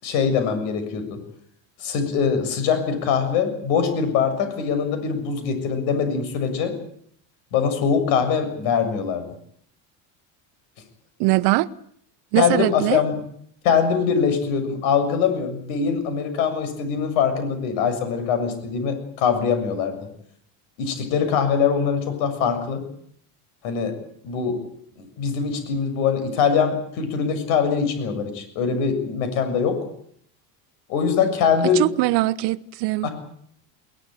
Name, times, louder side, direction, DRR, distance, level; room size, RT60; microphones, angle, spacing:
voice 1, 0.0-1.2 1.8-6.7 7.5-9.3 12.4-13.2 13.6-20.0 20.8-22.8 23.6-24.0 24.2-24.6 25.0-29.8 30.9-31.8 33.0-33.1, left 6 dB, 70° left, 7.0 m, -22 dB
voice 2, 11.2-11.7 12.3-13.0 31.7-33.1, right 19 dB, 55° right, 1.1 m, -21 dB
21.0 x 20.0 x 9.2 m
cardioid pair, 155°, 47 cm